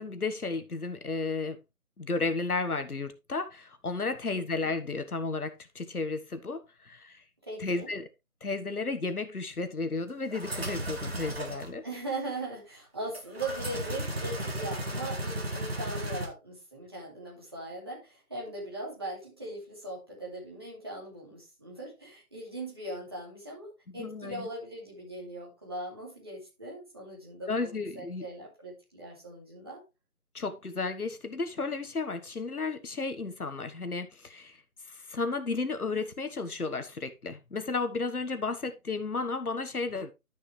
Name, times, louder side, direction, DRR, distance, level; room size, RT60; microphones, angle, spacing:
voice 1, 0.0-1.6 2.0-7.2 7.6-8.1 8.4-11.8 23.9-24.5 27.5-28.3 30.3-34.6 34.9-40.1, left 3 dB, 75° left, 1.5 m, -33 dB
voice 2, 4.3-4.6 7.4-7.9 11.8-29.8, right 2 dB, 15° right, 2.5 m, -40 dB
sound 1, 10.3-11.7 13.1-16.3, right 1 dB, 40° right, 1.9 m, -35 dB
12.0 x 6.2 x 3.3 m
figure-of-eight pair, 180°, 44 cm